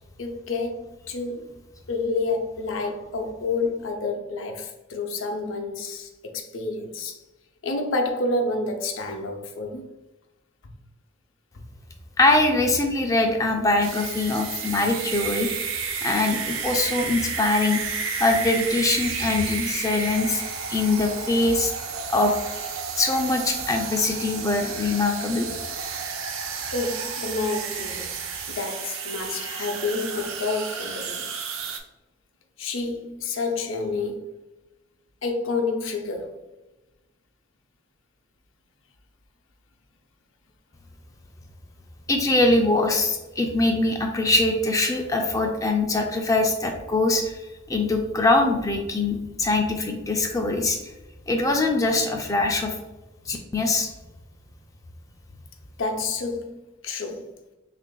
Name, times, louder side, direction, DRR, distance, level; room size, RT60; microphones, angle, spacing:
voice 1, 0.2-1.6 1.9-7.2 7.6-9.9 10.6-10.7 11.5-11.6 26.7-28.2 28.5-31.3 32.6-34.3 35.2-36.4 55.8-57.3, left 3 dB, 75° left, 0.6 m, -29 dB
voice 2, 12.2-15.5 16.0-17.8 18.2-20.4 20.7-21.7 22.1-22.3 23.0-25.5 42.1-47.4 47.7-50.8 51.3-52.7 53.3-53.9, left 2 dB, 15° left, 0.4 m, -22 dB
sound 1, 13.8-31.8, right 5 dB, 85° right, 0.5 m, -32 dB
5.8 x 2.5 x 2.2 m
head